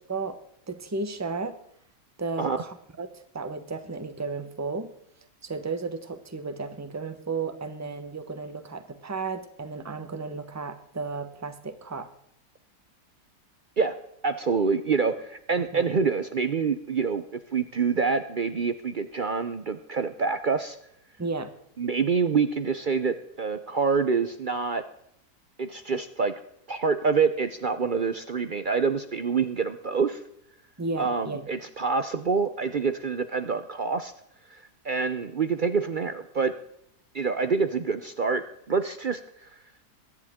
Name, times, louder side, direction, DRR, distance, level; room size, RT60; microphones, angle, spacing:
voice 1, 0.7-1.6 2.2-4.9 5.4-12.1 15.7-15.9 21.2-21.5 30.8-31.4, right 4 dB, 15° right, 9 dB, 0.8 m, -33 dB
voice 2, 14.2-20.8 21.8-24.8 25.6-26.3 26.7-30.2 31.0-34.1 34.5-36.5 37.1-39.5, right 5 dB, 60° right, 10 dB, 0.5 m, -26 dB
23.0 x 10.5 x 3.6 m, 0.74 s
omnidirectional pair, 1.8 m